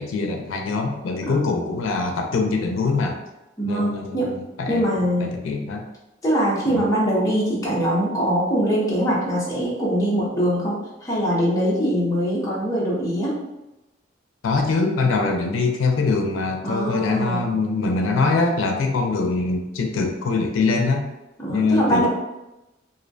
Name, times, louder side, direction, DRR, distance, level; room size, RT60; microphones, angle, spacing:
voice 1, 0.0-3.2 3.6-4.8 5.2-5.8 6.7-6.8 14.4-21.1 21.5-22.1, left 3 dB, 85° left, 3 dB, 0.4 m, -23 dB
voice 2, 3.6-4.3 4.7-5.3 6.2-13.4 16.6-17.4 21.4-22.1, equal, 15° left, -6 dB, 0.6 m, -22 dB
2.5 x 2.1 x 2.5 m, 0.97 s
head